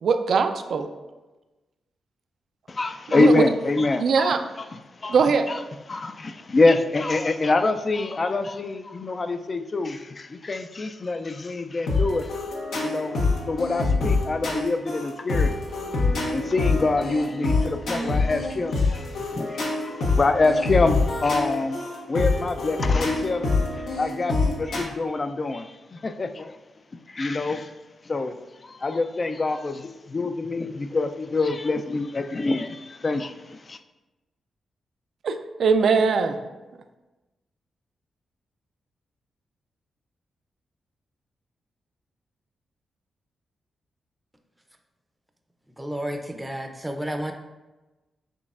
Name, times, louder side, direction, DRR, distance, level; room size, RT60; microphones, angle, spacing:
voice 1, 0.0-0.9 3.1-3.4 4.0-4.4 5.1-5.5 35.2-36.3, right 5 dB, 70° right, 8 dB, 0.4 m, -21 dB
voice 2, 2.7-4.3 5.0-5.6 5.9-12.3 12.8-13.2 13.5-15.5 16.3-23.6 24.0-26.6 26.9-27.7 28.1-33.8, left 3 dB, 40° left, 9 dB, 0.4 m, -25 dB
sound 1, 11.9-24.8, left 3 dB, 85° left, 0.8 m, -25 dB
voice 3, 45.8-47.3, equal, 10° right, 5 dB, 0.5 m, -31 dB
6.0 x 3.2 x 2.5 m, 1.1 s
cardioid pair, 60°, 0 cm